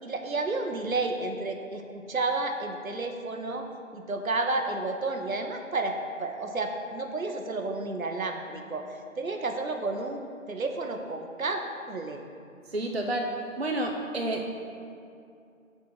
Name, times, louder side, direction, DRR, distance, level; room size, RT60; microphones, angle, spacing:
voice 1, 0.0-3.7 3.9-12.2, right 3 dB, 80° right, 4 dB, 0.8 m, -31 dB
voice 2, 12.7-13.3 13.6-14.5, right 1 dB, 50° right, 1 dB, 0.4 m, -29 dB
6.2 x 4.1 x 5.3 m, 2.4 s
figure-of-eight pair, 175°, 41 cm